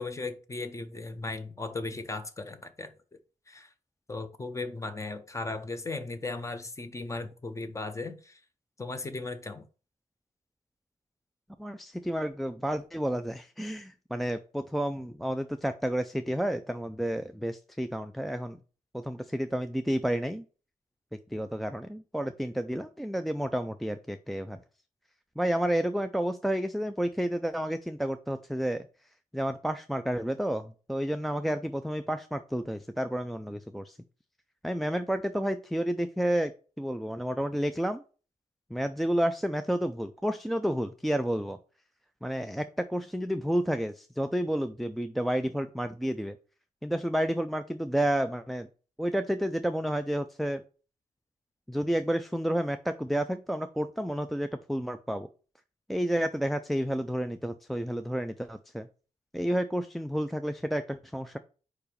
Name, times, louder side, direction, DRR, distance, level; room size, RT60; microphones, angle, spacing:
voice 1, 0.0-2.9 3.5-3.7 4.1-8.4 8.8-9.6, left 3 dB, 20° left, 0.7 m, -36 dB
voice 2, 11.6-18.6 18.9-20.4 21.3-24.6 25.4-28.9 29.3-34.0 34.6-36.5 36.8-38.0 38.7-41.6 42.2-46.4 46.8-48.7 49.0-50.6 51.7-55.3 55.9-58.9 59.3-61.4, equal, ahead, 0.3 m, -30 dB
4.8 x 4.8 x 5.1 m
wide cardioid pair, 160°, 14 cm